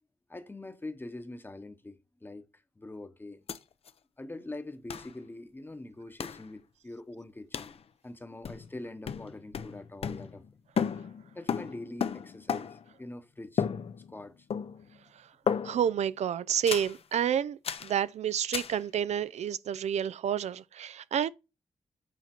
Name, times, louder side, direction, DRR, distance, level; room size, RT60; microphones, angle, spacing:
voice 1, 0.3-2.5 2.8-3.4 4.2-7.7 8.0-10.4 11.3-12.7 13.0-13.6 14.1-14.3, left 2 dB, 20° left, 0.9 m, -43 dB
sound 1, 3.5-3.6 3.9-4.0 4.9-5.1 6.2-6.5 7.5-7.8 8.4-8.8 9.1-10.5 10.8-12.9 13.6-14.2 14.5-15.0 15.5-16.0 16.7-17.0 17.6-18.0 18.5-18.8, left 7 dB, 60° left, 0.6 m, -34 dB
voice 2, 15.6-21.3, right 9 dB, 75° right, 0.4 m, -29 dB
8.2 x 4.2 x 4.4 m
wide cardioid pair, 100°, 11 cm